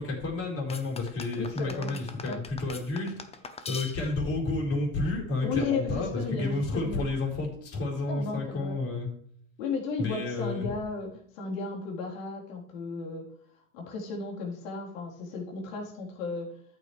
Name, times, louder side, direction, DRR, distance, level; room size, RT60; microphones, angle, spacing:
voice 1, 0.0-3.1 3.7-9.1 10.0-10.6, left 2 dB, 35° left, -2 dB, 4.5 m, -31 dB
sound 1, 0.7-4.3, left 5 dB, 15° left, 0.9 m, -42 dB
voice 2, 1.3-2.4 5.4-7.1 8.1-8.8 9.6-13.2 13.7-16.5, left 4 dB, 75° left, -1 dB, 3.8 m, -34 dB
13.0 x 8.7 x 3.3 m, 0.63 s
supercardioid pair, 120°, 39 cm